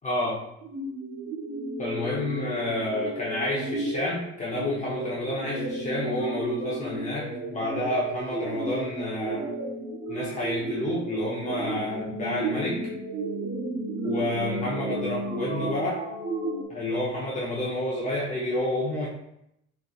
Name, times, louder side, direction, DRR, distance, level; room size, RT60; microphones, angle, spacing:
voice 1, 0.0-0.4 1.8-9.5 10.1-12.8 14.0-16.0 16.7-19.1, left 1 dB, 25° left, -6 dB, 0.8 m, -29 dB
sound 1, 0.6-16.6, right 2 dB, 40° right, 0.7 m, -33 dB
4.6 x 4.0 x 2.4 m, 0.80 s
cardioid pair, 140°, 30 cm